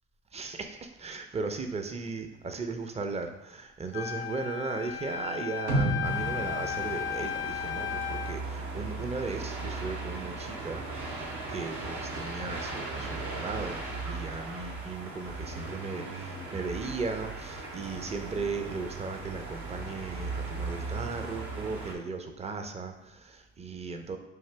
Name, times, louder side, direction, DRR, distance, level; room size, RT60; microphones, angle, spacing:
voice 1, 0.3-11.2 11.5-24.2, right 4 dB, 20° right, 6 dB, 0.5 m, -37 dB
Wind instrument woodwind instrument, 3.9-8.4, left 9 dB, 50° left, 0.5 m, -35 dB
sound 1, 5.7-7.8 8.2-8.3, right 1 dB, 85° right, 0.6 m, -31 dB
Ottawa winter soundscape, 6.0-21.9, right 3 dB, 65° right, 1.0 m, -38 dB
4.8 x 2.6 x 3.3 m, 0.91 s
hypercardioid pair, 60°, 32 cm